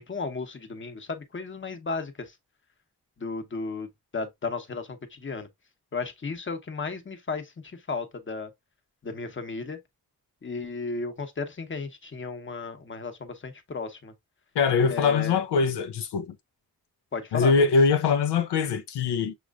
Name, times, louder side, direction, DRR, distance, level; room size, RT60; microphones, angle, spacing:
voice 1, 0.0-2.3 3.2-5.5 5.9-8.5 9.0-9.8 10.4-14.1 14.9-15.4 17.1-17.5, left 4 dB, 30° left, 0.9 m, -34 dB
voice 2, 14.5-16.4 17.3-19.3, left 5 dB, 90° left, 0.6 m, -23 dB
6.3 x 3.1 x 2.3 m
cardioid pair, 90°, 39 cm